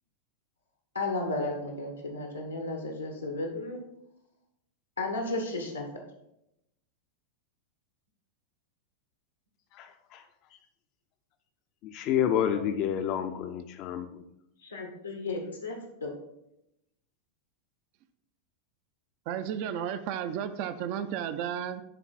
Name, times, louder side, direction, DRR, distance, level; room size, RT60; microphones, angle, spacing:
voice 1, 0.9-3.8 5.0-5.9 12.5-12.6 14.6-16.1, left 2 dB, 85° left, 2 dB, 1.1 m, -34 dB
voice 2, 9.7-10.2 11.8-14.2, left 9 dB, 40° left, 7 dB, 0.5 m, -29 dB
voice 3, 19.3-21.8, right 9 dB, 45° right, 11 dB, 0.5 m, -33 dB
9.9 x 3.8 x 4.0 m, 0.83 s
figure-of-eight pair, 90°, 0 cm